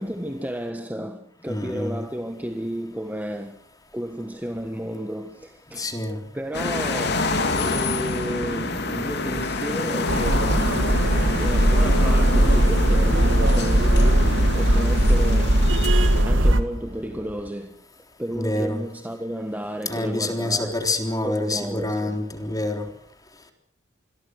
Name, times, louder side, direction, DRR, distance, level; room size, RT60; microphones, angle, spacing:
voice 1, 0.0-3.6 3.9-5.9 6.3-10.8 11.4-15.6 16.2-17.8 18.2-20.7 21.2-22.2, equal, 10° right, 1.4 m, -32 dB
voice 2, 1.5-2.1 5.8-6.2 18.3-18.9 19.9-22.9, left 2 dB, 20° left, 3.7 m, -27 dB
sound 1, 6.5-16.2, left 2 dB, 60° left, 3.6 m, -27 dB
sound 2, 10.1-16.6, right 1 dB, 75° right, 2.1 m, -19 dB
sound 3, 11.1-17.5, equal, 50° right, 4.6 m, -44 dB
28.0 x 21.5 x 6.6 m
head